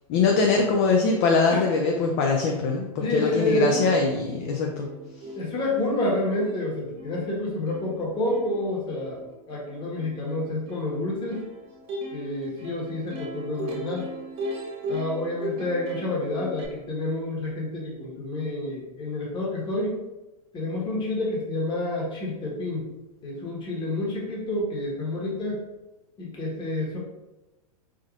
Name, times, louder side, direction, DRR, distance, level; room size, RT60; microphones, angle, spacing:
voice 1, 0.1-4.9, left 4 dB, 45° left, 2 dB, 0.4 m, -22 dB
Plucked string instrument, 2.8-2.9 3.1-16.7, equal, 30° right, 0.6 m, -38 dB
voice 2, 3.0-3.9 5.3-9.2 9.5-11.5 12.1-14.1 14.9-20.0 20.5-22.8 23.2-25.6 26.2-27.0, left 1 dB, 25° left, -3 dB, 1.1 m, -28 dB
3.5 x 2.6 x 2.4 m, 1.0 s
hypercardioid pair, 110°, 19 cm